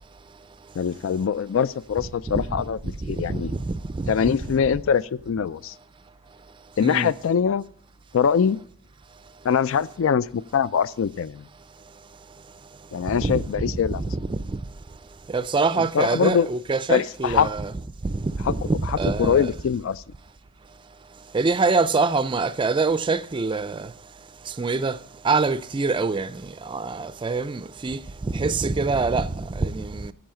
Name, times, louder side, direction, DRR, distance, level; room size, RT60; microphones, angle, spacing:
voice 1, 0.8-3.5 4.1-5.7 6.8-7.6 8.1-8.6 9.4-11.5 12.9-14.0 15.9-16.5 16.9-17.5 18.5-18.6 19.2-20.0, left 7 dB, 70° left, 0.4 m, -23 dB
voice 2, 3.0-3.4 3.7-4.4 6.8-7.1 13.2-13.7 14.0-14.4 15.3-17.7 18.0-18.2 18.5-19.5 21.3-23.9 24.6-25.0 25.2-26.3 26.7-28.0 28.3-30.1, right 3 dB, 25° right, 0.4 m, -25 dB
10.5 x 7.9 x 7.5 m
head